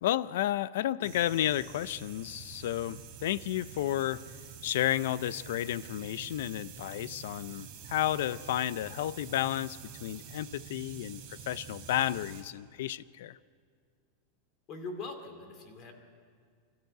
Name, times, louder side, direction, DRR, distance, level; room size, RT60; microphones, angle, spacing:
voice 1, 0.0-4.2 4.6-13.4, left 13 dB, 65° left, 0.5 m, -32 dB
sound 1, 1.0-12.4, right 8 dB, 25° right, 3.5 m, -47 dB
voice 2, 14.7-15.9, left 3 dB, 30° left, 2.4 m, -41 dB
25.5 x 13.5 x 9.1 m
supercardioid pair, 175°, 0 cm